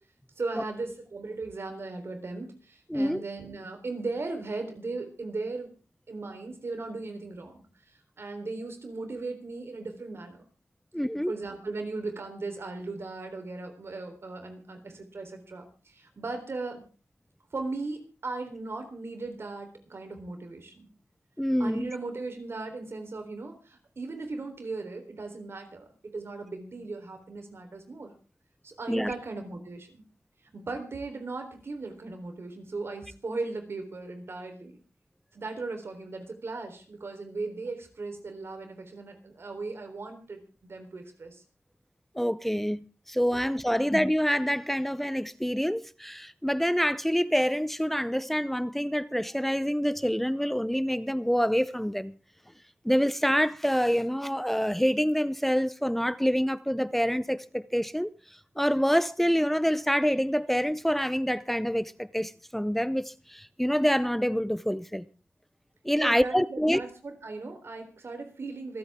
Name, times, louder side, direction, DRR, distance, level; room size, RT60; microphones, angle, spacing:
voice 1, 0.4-5.7 6.1-7.6 8.2-10.4 11.3-16.8 17.5-20.9 21.6-28.1 28.6-30.0 30.5-34.8 35.3-41.4 66.0-68.8, right 3 dB, 60° right, 3.8 m, -37 dB
voice 2, 2.9-3.2 10.9-11.3 21.4-21.9 28.9-29.1 42.1-52.1 52.8-58.1 58.6-65.1 65.8-66.8, equal, 5° left, 0.6 m, -26 dB
26.0 x 8.8 x 3.7 m
cardioid pair, 65°, 5 cm